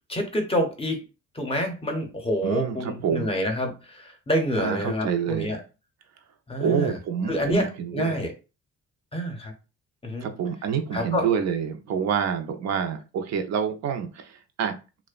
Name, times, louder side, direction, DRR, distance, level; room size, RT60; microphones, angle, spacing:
voice 1, 0.1-1.0 1.3-5.6 6.5-7.0 7.3-8.3 9.1-9.5 10.0-10.3 10.9-11.3, equal, 20° left, 3 dB, 0.7 m, -27 dB
voice 2, 2.4-3.4 4.6-5.6 6.6-8.2 10.2-14.8, right 7 dB, 60° right, 6 dB, 0.4 m, -27 dB
2.6 x 2.0 x 2.4 m, 0.31 s
cardioid pair, 90°, 30 cm